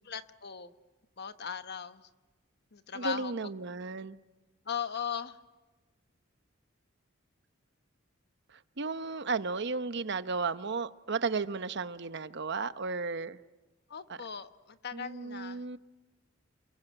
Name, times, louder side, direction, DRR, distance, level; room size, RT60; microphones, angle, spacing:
voice 1, 0.0-0.7 1.2-2.1 2.7-3.3 4.6-5.4 13.9-15.6, left 7 dB, 55° left, 10 dB, 1.2 m, -38 dB
voice 2, 2.9-4.2 8.5-13.4 14.9-15.8, right 4 dB, 60° right, 12 dB, 0.9 m, -34 dB
28.5 x 22.5 x 9.0 m, 1.2 s
head